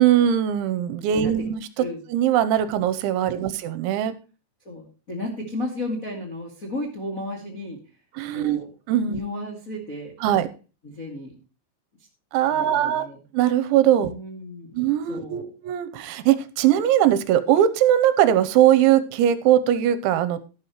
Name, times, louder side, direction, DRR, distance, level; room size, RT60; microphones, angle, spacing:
voice 1, 0.0-1.6 2.1-4.2 8.2-8.6 8.9-9.2 10.2-10.5 12.3-13.1 13.3-14.1 14.8-20.4, right 11 dB, 85° right, 13 dB, 3.0 m, -20 dB
voice 2, 1.1-1.5 1.8-2.0 3.2-3.6 4.6-7.8 8.3-8.7 9.1-10.1 10.8-11.3 12.5-13.2 14.0-14.8 15.1-15.5, left 1 dB, 35° left, -1 dB, 1.4 m, -34 dB
12.5 x 12.0 x 3.0 m, 0.33 s
omnidirectional pair, 5.5 m